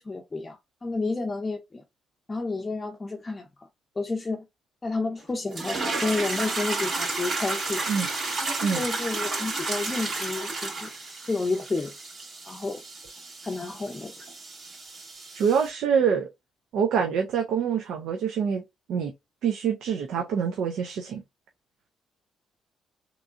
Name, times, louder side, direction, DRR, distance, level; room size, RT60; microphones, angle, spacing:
voice 1, 0.0-1.8 2.3-3.7 4.0-4.5 4.8-7.8 8.4-10.9 11.3-11.9 12.4-12.8 13.4-14.2, left 3 dB, 25° left, 0.6 m, -31 dB
sound 1, 5.5-15.7, right 3 dB, 45° right, 2.3 m, -32 dB
voice 2, 15.3-16.3 16.7-18.6 18.9-19.1 19.4-21.2, right 7 dB, 80° right, 0.6 m, -25 dB
3.6 x 3.0 x 2.5 m
cardioid pair, 90°, 0 cm